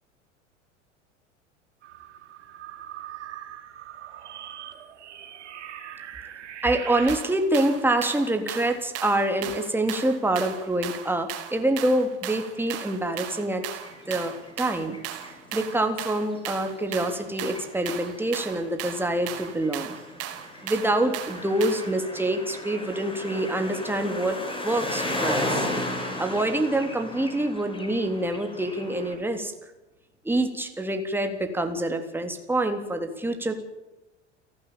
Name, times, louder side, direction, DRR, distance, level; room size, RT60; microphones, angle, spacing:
sound 1, 1.8-7.1, right 10 dB, 70° right, 3.3 m, -41 dB
voice 1, 6.6-13.7 14.1-15.0 15.5-19.9 20.6-25.7 26.2-29.5 30.3-33.5, right 1 dB, 5° right, 5 dB, 3.4 m, -26 dB
sound 2, 7.1-22.0, right 11 dB, 40° right, 4.3 m, -37 dB
sound 3, 13.8-15.7 15.9-16.0 16.3-29.1, left 1 dB, 15° left, 6.1 m, -35 dB
29.5 x 12.0 x 8.8 m, 1.1 s
figure-of-eight pair, 80°, 36 cm